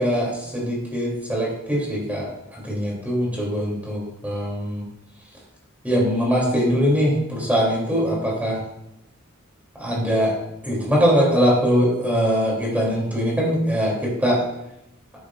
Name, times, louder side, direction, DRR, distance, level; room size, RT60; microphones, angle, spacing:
voice 1, 0.0-4.9 5.8-8.6 9.8-10.4 10.6-14.4, equal, 10° right, -4 dB, 3.0 m, -22 dB
12.5 x 9.8 x 2.5 m, 0.83 s
head